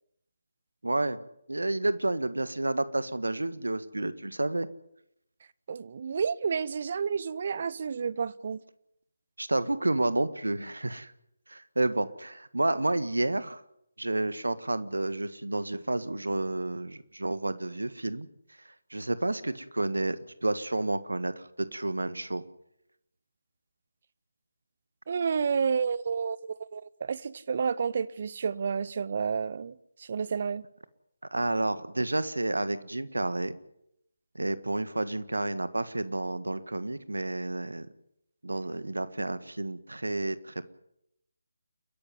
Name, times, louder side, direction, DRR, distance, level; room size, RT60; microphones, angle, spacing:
voice 1, 0.8-1.2 1.5-4.7 9.4-11.1 11.5-13.6 14.0-18.3 18.9-22.4 31.3-33.6 34.3-37.9 38.4-40.5, right 2 dB, 70° right, 1.6 m, -30 dB
voice 2, 5.7-8.6 25.1-30.6, right 6 dB, 40° right, 0.7 m, -30 dB
29.5 x 11.0 x 9.6 m
figure-of-eight pair, 150°, 0 cm